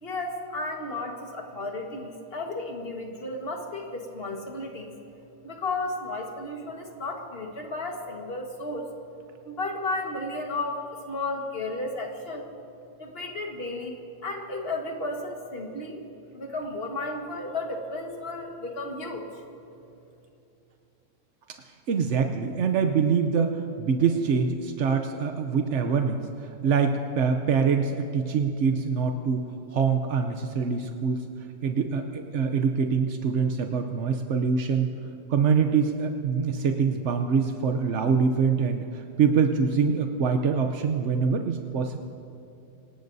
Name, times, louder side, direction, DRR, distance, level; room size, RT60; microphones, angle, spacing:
voice 1, 0.0-4.9 5.4-8.9 9.4-12.5 13.0-14.0 14.2-16.1 16.3-19.2, left 2 dB, 35° left, 2 dB, 1.6 m, -33 dB
voice 2, 21.9-31.3 31.6-34.9 35.3-41.9, right 6 dB, 65° right, 5 dB, 0.7 m, -24 dB
26.5 x 18.5 x 2.7 m, 2.7 s
omnidirectional pair, 2.0 m